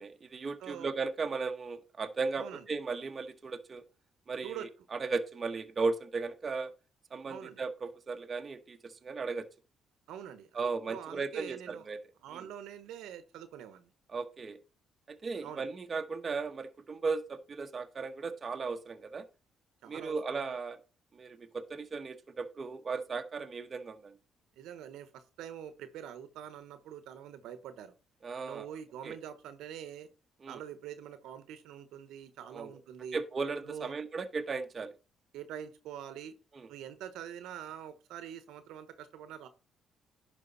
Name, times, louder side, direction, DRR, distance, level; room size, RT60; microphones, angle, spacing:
voice 1, 0.0-3.8 4.3-6.7 7.1-9.5 10.5-12.0 12.3-12.4 14.1-14.6 15.1-19.2 19.9-20.8 21.1-24.1 28.2-28.7 29.0-29.2 30.4-30.6 32.5-32.7 33.1-34.9 36.6-36.7, right 4 dB, 40° right, 1.2 m, -36 dB
voice 2, 7.3-7.6 10.1-11.9 12.2-13.9 15.4-15.7 19.8-20.5 24.6-27.9 28.4-30.1 30.5-33.2 33.6-33.9 35.3-36.3 36.7-39.5, right 9 dB, 80° right, 1.2 m, -45 dB
11.0 x 5.3 x 4.1 m
supercardioid pair, 70°, 0 cm